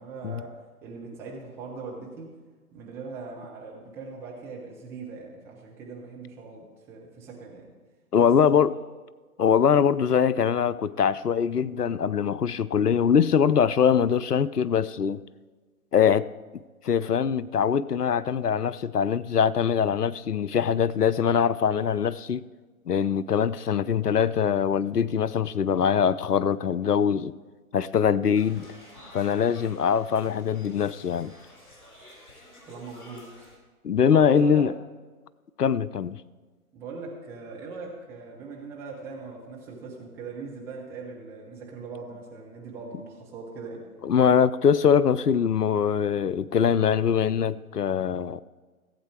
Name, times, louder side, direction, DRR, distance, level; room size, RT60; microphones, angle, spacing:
voice 1, 0.0-2.3 2.7-7.7 8.1-8.8 32.6-33.5 34.1-34.6 36.7-43.9, right 4 dB, 5° right, 0.7 m, -40 dB
voice 2, 8.1-8.7 9.4-15.2 15.9-16.3 16.8-22.4 22.9-27.3 27.7-28.6 29.1-31.3 33.8-34.7 35.6-36.2 44.0-48.4, left 7 dB, 85° left, 0.6 m, -23 dB
sound 1, 28.3-33.6, left 1 dB, 65° left, 4.2 m, -50 dB
15.5 x 8.4 x 4.7 m
figure-of-eight pair, 130°, 45 cm